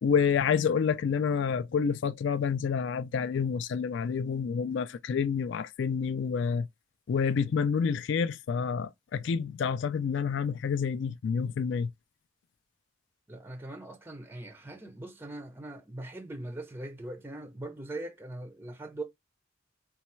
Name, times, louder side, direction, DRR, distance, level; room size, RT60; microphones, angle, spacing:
voice 1, 0.0-6.7 7.1-11.9, left 6 dB, 65° left, 0.3 m, -28 dB
voice 2, 13.3-19.0, right 1 dB, 10° right, 0.5 m, -41 dB
4.0 x 2.3 x 4.3 m
head